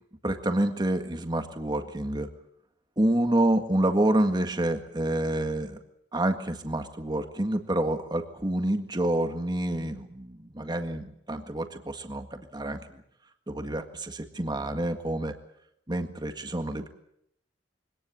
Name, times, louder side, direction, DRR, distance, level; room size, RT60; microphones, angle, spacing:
voice 1, 0.2-2.3 3.0-5.8 6.1-12.9 13.5-15.4 15.9-16.9, right 1 dB, 25° right, 6 dB, 1.8 m, -28 dB
24.0 x 18.0 x 8.7 m, 0.76 s
head